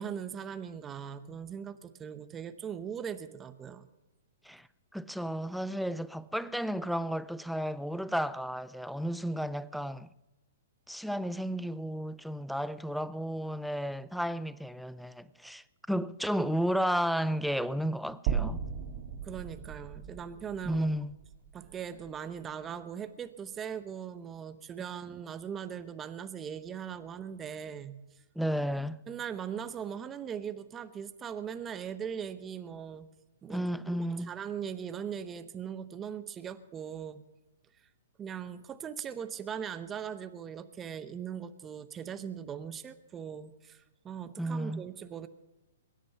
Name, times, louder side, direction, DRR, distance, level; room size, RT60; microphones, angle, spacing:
voice 1, 0.0-3.9 19.2-20.9 21.5-28.0 29.1-33.1 33.4-37.2 38.2-45.3, right 8 dB, 20° right, 0.9 m, -40 dB
voice 2, 4.9-10.1 10.9-18.6 20.6-21.2 28.4-29.0 33.5-34.3 44.4-44.9, equal, ahead, 0.5 m, -33 dB
sound 1, 18.3-22.5, right 8 dB, 45° right, 2.2 m, -36 dB
22.5 x 10.0 x 5.9 m
hypercardioid pair, 125°, 0 cm